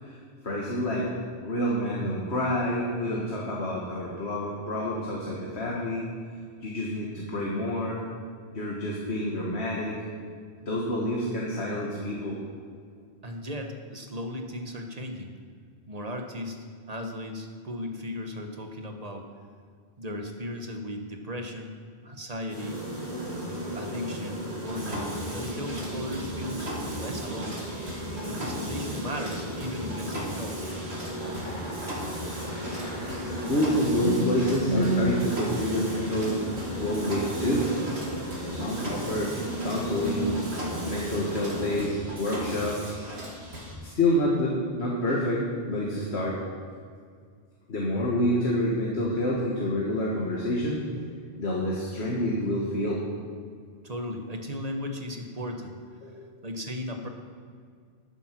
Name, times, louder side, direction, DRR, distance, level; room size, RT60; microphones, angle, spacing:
voice 1, 0.4-1.1 1.4-6.0 6.6-8.0 8.5-10.0 10.7-12.4 32.4-32.6 32.8-36.4 36.8-37.7 38.5-39.3 39.6-40.3 40.8-43.0 43.8-46.4 47.7-53.0 56.0-56.3, left 1 dB, 85° left, -4 dB, 1.9 m, -28 dB
voice 2, 13.2-15.3 15.9-16.6 16.9-19.3 20.0-21.7 22.0-22.8 23.7-27.6 28.3-30.6 48.3-48.4 53.8-55.8 56.4-57.1, left 1 dB, 40° right, 4 dB, 1.2 m, -36 dB
sound 1, 22.5-41.8, right 1 dB, 20° right, 3.3 m, -33 dB
Mechanisms, 24.6-43.7, equal, 90° right, 2.6 m, -38 dB
sound 2, 29.2-43.1, equal, 50° left, 3.2 m, -48 dB
12.0 x 9.0 x 6.0 m, 2.1 s
omnidirectional pair, 1.1 m